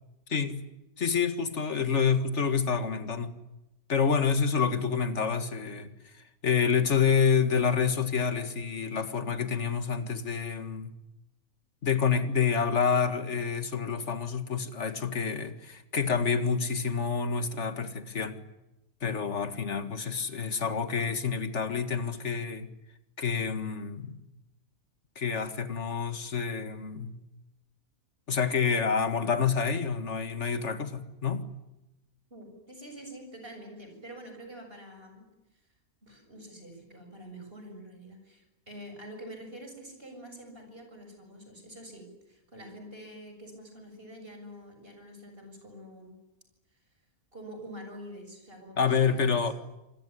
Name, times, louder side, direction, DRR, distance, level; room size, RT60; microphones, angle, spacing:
voice 1, 0.3-0.6 1.0-3.3 3.9-10.9 11.8-18.4 19.0-22.7 23.2-24.2 25.2-27.2 28.3-31.4 48.8-49.5, left 6 dB, 50° left, 2.1 m, -28 dB
voice 2, 32.3-35.3 36.0-46.2 47.3-49.4, equal, 35° right, 7.5 m, -46 dB
27.0 x 21.5 x 10.0 m
omnidirectional pair, 1.6 m